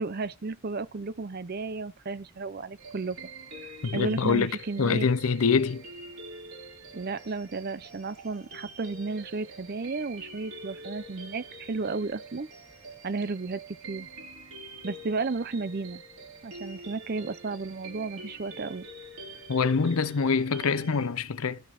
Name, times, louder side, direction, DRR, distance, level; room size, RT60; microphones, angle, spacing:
voice 1, 0.0-3.2 3.9-5.1 6.9-12.5 13.0-13.6 13.9-14.1 14.8-16.0 16.4-18.9, right 3 dB, 45° right, 0.5 m, -33 dB
sound 1, 2.8-21.1, right 1 dB, 90° right, 5.1 m, -45 dB
voice 2, 3.8-4.5 4.8-5.8 19.5-21.6, left 5 dB, 75° left, 0.6 m, -25 dB
12.5 x 4.9 x 3.5 m
head